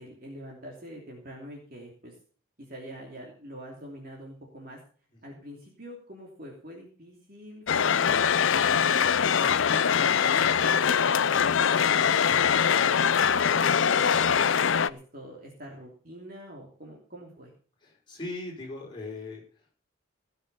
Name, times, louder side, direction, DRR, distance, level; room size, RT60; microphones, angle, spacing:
voice 1, 0.0-2.2 2.6-4.8 5.2-8.3 8.7-14.4 14.9-17.5, equal, 45° right, -1 dB, 3.1 m, -45 dB
sound 1, 7.7-14.9, left 7 dB, 75° left, 0.5 m, -23 dB
voice 2, 17.8-19.7, left 2 dB, 25° left, -2 dB, 5.0 m, -39 dB
17.5 x 7.1 x 6.9 m, 0.42 s
head